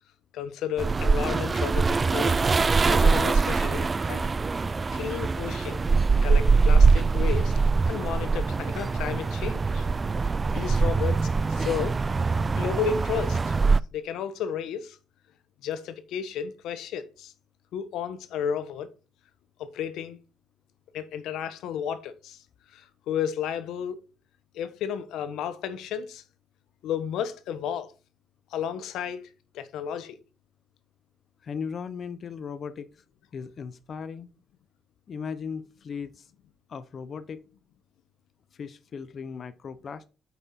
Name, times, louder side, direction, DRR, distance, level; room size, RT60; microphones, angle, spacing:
voice 1, 0.3-2.3 2.9-4.3 4.9-5.8 6.2-7.5 7.9-9.9 10.5-11.9 12.6-13.6 13.9-15.0 15.6-17.3 17.7-18.9 19.6-20.2 20.9-22.4 22.7-24.0 24.5-26.2 26.8-27.9 28.5-29.2 29.5-30.2, left 8 dB, 85° left, 0.9 m, -32 dB
sound 1, 0.8-13.8, right 4 dB, 30° right, 0.3 m, -23 dB
voice 2, 31.4-33.0 33.3-34.3 35.1-36.3 36.7-37.5 38.5-40.1, left 6 dB, 50° left, 0.6 m, -37 dB
8.6 x 5.5 x 4.2 m
cardioid pair, 90°, 0 cm